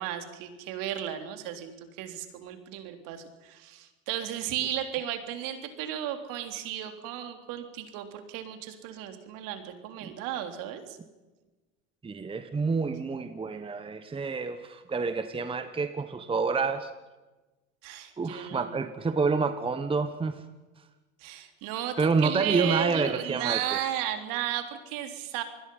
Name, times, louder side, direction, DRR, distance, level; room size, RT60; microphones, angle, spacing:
voice 1, 0.0-1.7 2.0-11.0 17.8-18.8 21.2-25.4, right 11 dB, 55° right, 6 dB, 3.6 m, -34 dB
voice 2, 12.0-16.9 18.2-20.4 22.0-23.8, right 4 dB, 15° right, 10 dB, 1.2 m, -28 dB
27.5 x 20.5 x 5.6 m, 1.2 s
hypercardioid pair, 105°, 40 cm